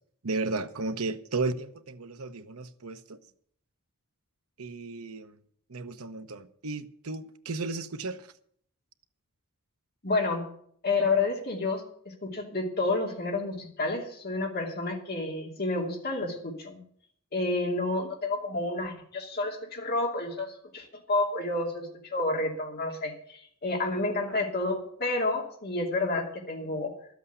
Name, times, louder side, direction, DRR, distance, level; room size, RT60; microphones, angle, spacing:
voice 1, 0.2-3.2 4.6-5.4 5.7-8.3, right 3 dB, 75° right, 0.9 m, -34 dB
voice 2, 10.0-10.5 10.8-16.8 17.3-26.9, left 2 dB, 45° left, 2.7 m, -30 dB
12.5 x 8.3 x 8.2 m
head